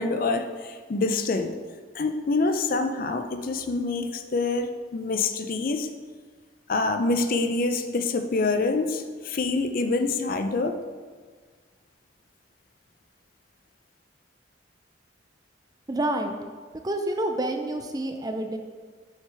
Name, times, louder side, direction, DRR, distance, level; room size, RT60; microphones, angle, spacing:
voice 1, 0.0-1.6 1.9-5.9 6.7-10.8, left 3 dB, 45° left, 7 dB, 0.4 m, -26 dB
voice 2, 15.9-16.4 16.8-18.6, right 1 dB, 20° right, 5 dB, 0.4 m, -28 dB
6.7 x 6.4 x 3.4 m, 1.5 s
head